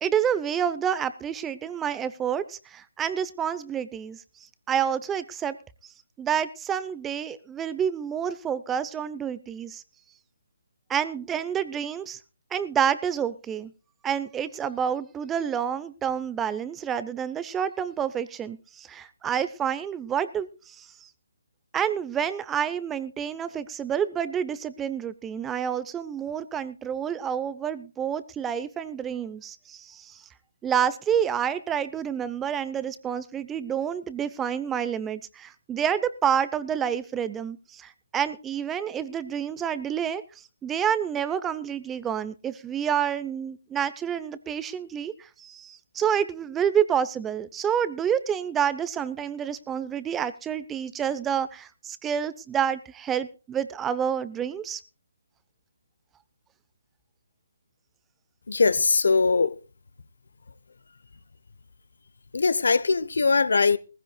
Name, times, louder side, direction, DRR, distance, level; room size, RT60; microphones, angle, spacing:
voice 1, 0.0-4.2 4.7-5.6 6.2-9.8 10.9-12.2 12.5-13.7 14.0-21.1 21.7-30.2 30.6-40.2 40.6-54.8, right 8 dB, 10° right, 0.7 m, -28 dB
voice 2, 58.5-59.5 62.3-63.8, left 4 dB, 70° left, 0.9 m, -21 dB
19.5 x 15.5 x 2.3 m
figure-of-eight pair, 150°, 0 cm